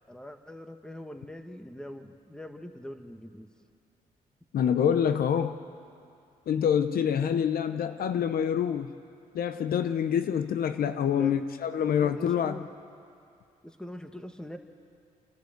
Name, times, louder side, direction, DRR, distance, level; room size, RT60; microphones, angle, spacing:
voice 1, 0.1-3.5 11.1-11.4 12.0-12.7 13.6-14.6, equal, 5° left, 6 dB, 1.7 m, -42 dB
voice 2, 4.5-5.6 6.5-8.9 9.3-12.6, left 8 dB, 70° left, 10 dB, 0.8 m, -26 dB
28.5 x 12.5 x 8.1 m, 2.5 s
cardioid pair, 70°, 16 cm